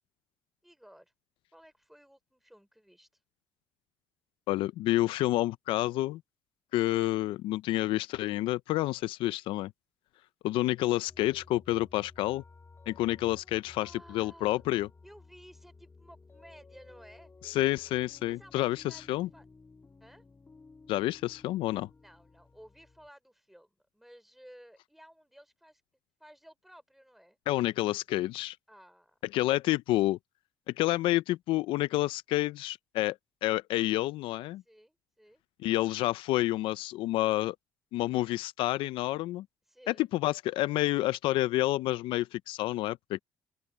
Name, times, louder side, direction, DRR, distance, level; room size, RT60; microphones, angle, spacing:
voice 1, 0.6-1.1 1.5-3.1 13.7-14.6 15.0-17.3 18.3-19.5 20.0-20.2 22.0-25.8 26.2-27.4 28.7-29.2 34.6-35.4 39.7-40.1, equal, ahead, 4.5 m, -55 dB
voice 2, 4.5-6.2 6.7-9.7 10.4-12.4 12.9-14.9 17.4-19.3 20.9-21.9 27.5-28.6 29.3-30.2 30.7-34.6 35.6-37.6 37.9-39.5 39.9-43.2, left 16 dB, 80° left, 0.4 m, -29 dB
sound 1, 11.1-23.1, left 3 dB, 25° left, 2.0 m, -56 dB
open air
supercardioid pair, 80°, 9 cm